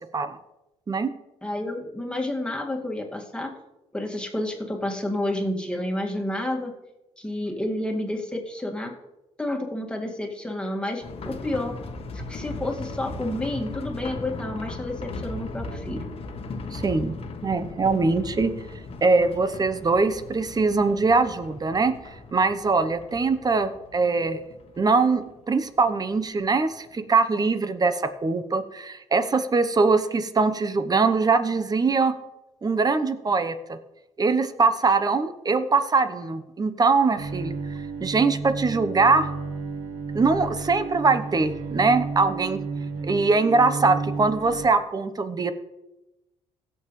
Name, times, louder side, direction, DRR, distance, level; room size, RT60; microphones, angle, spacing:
voice 1, 1.4-3.5 3.9-6.7 7.2-8.9 9.4-11.8 12.1-16.0, left 1 dB, 5° left, 0 dB, 2.1 m, -30 dB
sound 1, 11.0-26.5 26.7-26.8 27.2-27.3, left 3 dB, 50° left, 1.3 m, -38 dB
voice 2, 16.7-17.1 17.4-18.5 19.0-21.9 22.3-24.4 24.8-32.2 32.6-33.8 34.2-37.5 38.0-39.3 40.1-42.6 43.0-45.5, right 4 dB, 30° right, 11 dB, 0.9 m, -22 dB
Bowed string instrument, 37.2-44.7, right 4 dB, 90° right, 1.3 m, -32 dB
16.5 x 7.0 x 3.2 m, 0.96 s
supercardioid pair, 75°, 13 cm